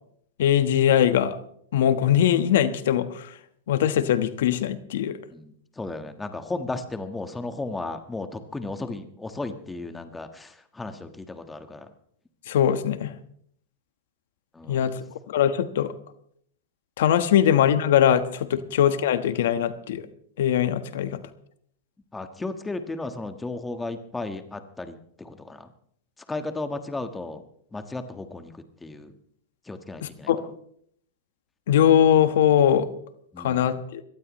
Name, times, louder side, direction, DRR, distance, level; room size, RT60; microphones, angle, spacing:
voice 1, 0.4-1.4 1.7-3.3 3.7-5.2 12.5-13.1 14.7-14.9 15.3-15.9 17.0-20.0 20.4-21.2 30.0-30.4 31.7-32.9 33.4-34.0, left 10 dB, 70° left, 10 dB, 1.3 m, -21 dB
voice 2, 5.3-11.9 14.5-15.0 22.1-25.7 26.3-27.4 27.7-28.5 28.8-29.1 29.7-30.3 33.3-33.8, left 2 dB, 10° left, 8 dB, 1.4 m, -34 dB
23.5 x 18.0 x 3.2 m, 0.66 s
hypercardioid pair, 130°, 0 cm